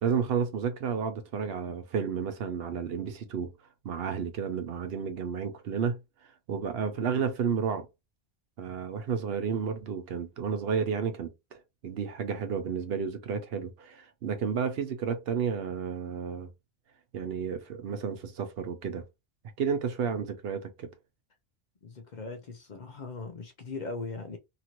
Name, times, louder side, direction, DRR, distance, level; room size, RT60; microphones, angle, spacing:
voice 1, 0.0-3.5 3.8-6.0 6.5-7.9 8.6-16.5 17.1-19.0 19.6-20.9, right 6 dB, 70° right, 0.8 m, -31 dB
voice 2, 21.8-24.4, left 3 dB, 55° left, 0.6 m, -39 dB
2.9 x 2.5 x 2.9 m
omnidirectional pair, 1.1 m